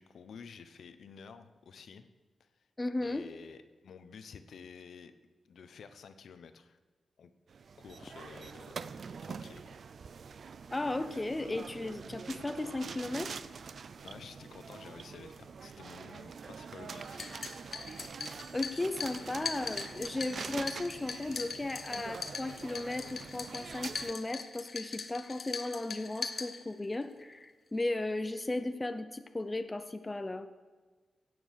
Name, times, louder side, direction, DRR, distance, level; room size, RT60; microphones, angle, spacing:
voice 1, 0.0-2.1 2.4-2.5 3.0-5.1 5.4-6.8 7.2-7.3 7.8-8.9 9.2-9.6 14.0-17.4, left 6 dB, 75° left, 9 dB, 0.9 m, -51 dB
voice 2, 2.8-3.3 10.7-13.3 18.5-30.5, left 2 dB, 15° left, 9 dB, 0.7 m, -35 dB
sound 1, 7.5-24.1, right 5 dB, 55° right, 0.5 m, -45 dB
sound 2, 17.0-27.0, left 5 dB, 50° left, 1.1 m, -41 dB
16.5 x 8.0 x 6.5 m, 1.4 s
wide cardioid pair, 135°, 0 cm